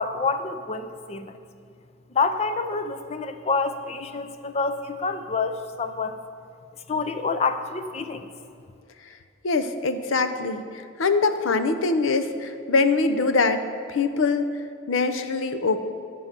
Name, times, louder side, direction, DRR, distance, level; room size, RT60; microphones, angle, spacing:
voice 1, 0.0-1.3 2.1-6.2 6.9-8.3, left 4 dB, 35° left, 9 dB, 0.4 m, -27 dB
voice 2, 9.4-15.8, left 3 dB, 80° left, 9 dB, 0.6 m, -23 dB
11.0 x 3.9 x 7.4 m, 2.4 s
head